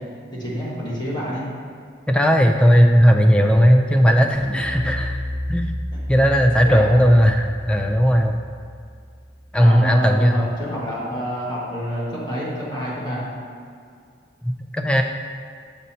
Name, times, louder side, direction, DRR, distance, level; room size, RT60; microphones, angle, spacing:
voice 1, 0.4-1.5 5.9-6.0 6.6-7.0 9.6-13.3, equal, 25° left, -6 dB, 1.4 m, -27 dB
voice 2, 2.1-5.2 5.5-5.7 6.1-8.4 9.5-10.5 14.4-15.0, equal, 5° left, 4 dB, 0.3 m, -16 dB
sound 1, 4.3-9.7, equal, 30° right, 0.9 m, -31 dB
7.4 x 5.3 x 2.8 m, 2.2 s
head